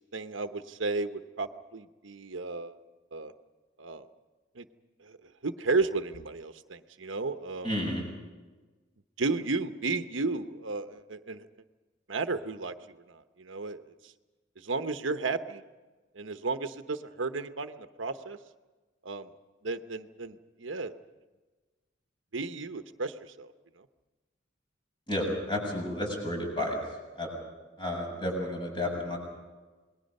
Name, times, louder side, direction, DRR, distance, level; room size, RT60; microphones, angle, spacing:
voice 1, 0.0-2.8 3.1-3.3 3.8-4.1 4.6-4.7 5.0-5.2 5.4-7.7 9.2-11.5 12.1-13.8 14.6-15.6 16.1-18.4 19.0-19.3 19.6-20.9 22.3-23.5 23.8-23.9, right 3 dB, 90° right, 9 dB, 1.0 m, -33 dB
voice 2, 7.6-8.1 25.1-26.8 27.2-27.3 27.8-29.2, left 1 dB, 25° left, 1 dB, 7.2 m, -31 dB
27.5 x 21.0 x 5.5 m, 1.3 s
head